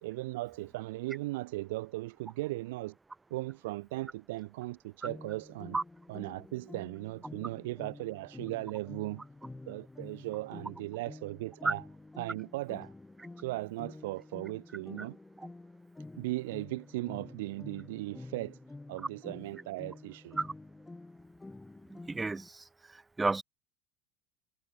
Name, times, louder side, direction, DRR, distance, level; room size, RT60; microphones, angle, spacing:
voice 1, 0.0-3.0 3.3-5.8 6.1-9.2 9.7-11.8 12.2-12.9 13.4-15.2 16.2-18.6 18.9-20.4, right 19 dB, 80° right, 1.8 m, -37 dB
sound 1, 5.0-22.5, left 2 dB, 10° left, 7.4 m, -49 dB
voice 2, 21.9-22.6 23.2-23.4, right 3 dB, 15° right, 0.7 m, -30 dB
hypercardioid pair, 90°, 0 cm